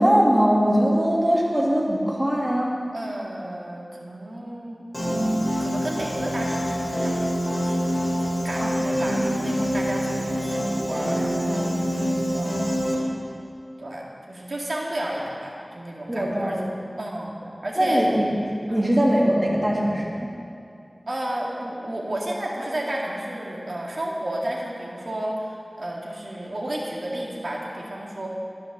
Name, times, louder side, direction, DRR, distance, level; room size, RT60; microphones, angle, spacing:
voice 1, 0.0-2.7 8.6-8.9 16.1-16.7 17.8-18.4 18.7-20.2, equal, 25° right, -3 dB, 2.8 m, -21 dB
voice 2, 2.9-4.8 5.6-7.3 7.6-12.0 12.3-13.3 13.8-16.6 17.0-18.1 18.7-18.9 21.1-28.3, right 1 dB, 75° right, -3 dB, 2.1 m, -32 dB
Piano, 4.9-13.0, equal, 20° left, 3.3 m, -25 dB
12.0 x 10.0 x 6.7 m, 2.4 s
wide cardioid pair, 55°, 0 cm